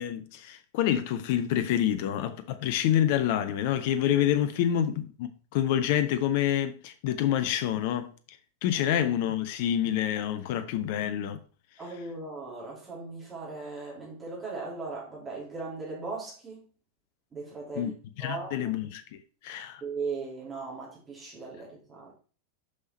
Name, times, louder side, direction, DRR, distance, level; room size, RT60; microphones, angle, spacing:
voice 1, 0.0-8.1 8.6-11.4 17.8-17.9 18.2-19.2 19.4-19.8, left 10 dB, 50° left, 0.6 m, -27 dB
voice 2, 11.8-16.6 17.3-17.9 18.2-18.7 19.8-22.1, right 4 dB, 15° right, 3.0 m, -38 dB
6.3 x 5.6 x 4.2 m
figure-of-eight pair, 90°, 0 cm